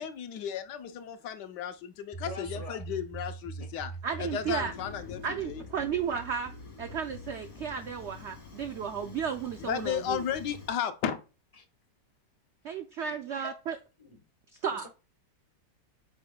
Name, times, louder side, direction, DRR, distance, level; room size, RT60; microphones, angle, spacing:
voice 1, 0.0-3.9 4.2-5.6 9.6-11.2, left 9 dB, 75° left, 1.3 m, -34 dB
sound 1, 2.1-7.4, right 3 dB, ahead, 1.2 m, -43 dB
voice 2, 2.3-2.8 3.6-3.7 11.6-11.7 13.4-13.6 14.0-14.2 14.7-14.9, left 1 dB, 25° left, 0.9 m, -43 dB
voice 3, 4.0-4.7 5.2-6.5 6.8-10.2 12.6-13.8 14.5-14.9, right 7 dB, 80° right, 0.6 m, -33 dB
Fire, 4.2-10.8, left 5 dB, 45° left, 2.5 m, -48 dB
8.5 x 5.1 x 2.2 m
omnidirectional pair, 1.9 m